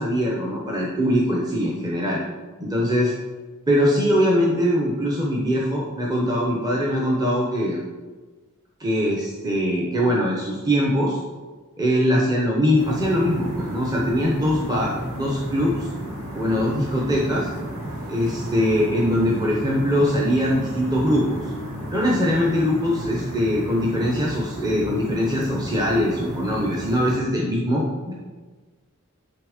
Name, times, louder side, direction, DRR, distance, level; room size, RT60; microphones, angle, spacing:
voice 1, 0.0-2.2 2.6-3.1 3.7-7.8 8.8-11.2 11.8-15.9 16.3-17.5 18.1-21.4 21.9-28.1, equal, 20° right, -3 dB, 0.8 m, -22 dB
sound 1, 12.8-27.2, right 1 dB, 75° right, 2.3 m, -33 dB
9.8 x 3.5 x 4.9 m, 1.3 s
head